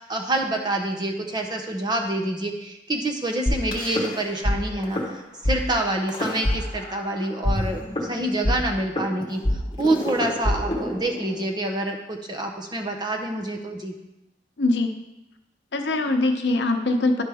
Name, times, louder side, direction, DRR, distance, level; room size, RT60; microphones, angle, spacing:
voice 1, 0.0-5.0 5.4-7.8 8.1-9.4 9.8-13.9, right 1 dB, 25° right, 2 dB, 0.7 m, -27 dB
sound 1, 3.5-4.6 4.8-5.1 5.4-5.6 6.1-7.1 7.4-11.5, left 1 dB, 25° left, 1.0 m, -25 dB
voice 2, 14.6-14.9 15.7-17.2, left 2 dB, 85° left, 5 dB, 0.8 m, -22 dB
11.0 x 5.1 x 3.5 m, 0.94 s
head